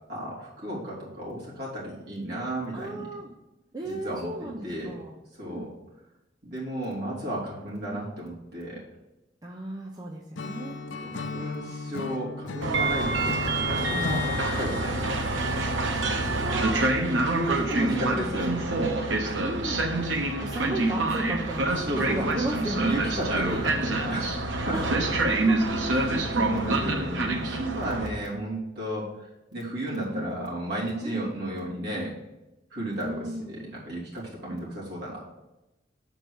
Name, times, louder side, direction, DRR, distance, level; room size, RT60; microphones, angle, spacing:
voice 1, 0.1-3.1 3.8-5.0 5.4-5.7 6.4-8.8 11.0-15.1 17.3-18.6 19.2-19.5 21.8-22.4 22.8-25.5 26.4-29.1 29.5-32.1 32.7-35.3, right 1 dB, 60° right, -6 dB, 3.0 m, -33 dB
voice 2, 2.7-3.3 3.7-5.2 5.4-5.7 9.4-10.8 16.2-19.9 20.2-23.0 23.4-23.6 24.7-24.9 25.2-26.5 30.1-30.3 31.0-31.3 33.0-33.6, right 1 dB, 20° right, -1 dB, 0.6 m, -35 dB
Acoustic guitar / Strum, 10.4-14.5, left 4 dB, 75° left, 0.5 m, -35 dB
Train, 12.6-28.1, right 2 dB, 85° right, 1.0 m, -27 dB
6.8 x 4.5 x 6.2 m, 0.97 s
head